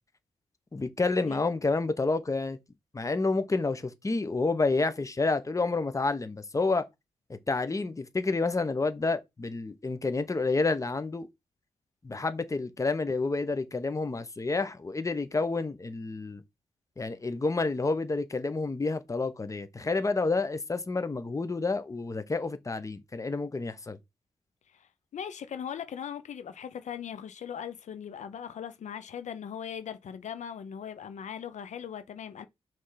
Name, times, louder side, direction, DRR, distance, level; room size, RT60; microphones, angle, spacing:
voice 1, 0.7-2.6 2.9-6.9 7.3-11.3 12.0-16.4 17.0-24.0, left 3 dB, 25° left, 1.0 m, -29 dB
voice 2, 25.1-32.5, left 8 dB, 85° left, 0.7 m, -39 dB
6.3 x 3.5 x 5.7 m
wide cardioid pair, 90°, 12 cm